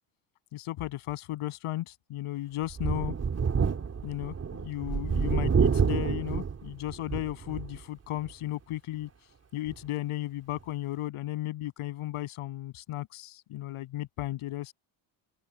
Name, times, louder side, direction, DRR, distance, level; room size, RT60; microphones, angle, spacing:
voice 1, 0.5-3.1 4.0-9.1 9.5-14.7, left 15 dB, 85° left, 8.0 m, -35 dB
Thunder, 2.7-7.8 8.2-8.3 9.7-9.8, right 6 dB, 30° right, 3.5 m, -28 dB
open air
cardioid pair, 155°, 50 cm